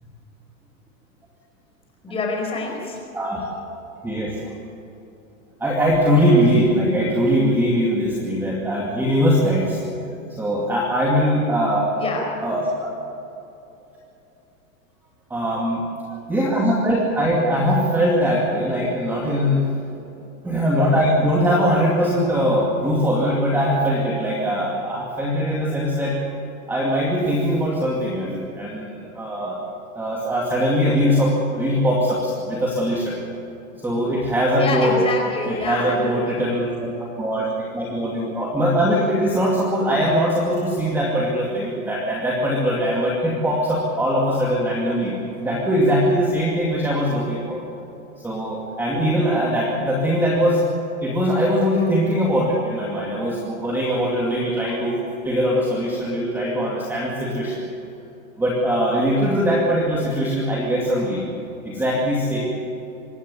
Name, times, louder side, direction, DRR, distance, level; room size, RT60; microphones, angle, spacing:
voice 1, 2.0-3.0 11.9-12.3 34.6-36.4, left 3 dB, 15° left, 0 dB, 4.8 m, -26 dB
voice 2, 3.9-4.5 5.6-9.8 10.3-11.9 12.4-12.9 15.3-15.8 16.3-19.7 20.4-26.2 26.7-29.6 29.9-33.2 33.8-35.0 35.4-45.1 45.4-47.6 48.2-50.6 51.0-54.9 55.2-57.6 58.4-61.3 61.6-62.4, equal, 5° right, -3 dB, 2.3 m, -21 dB
25.0 x 12.5 x 9.7 m, 2.9 s
supercardioid pair, 165°, 43 cm